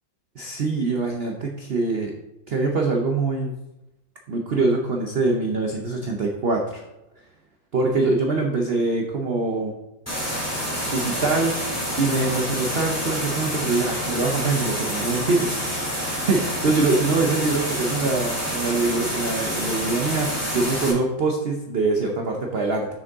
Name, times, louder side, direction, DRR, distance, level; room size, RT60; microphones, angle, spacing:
voice 1, 0.4-2.1 2.5-3.5 4.3-6.8 7.7-9.7 10.8-11.5 12.0-15.6 15.9-22.9, right 3 dB, 75° right, 1 dB, 0.5 m, -24 dB
sound 1, 10.1-20.9, equal, 10° left, 2.4 m, -28 dB
6.6 x 6.2 x 3.6 m, 0.96 s
omnidirectional pair, 2.0 m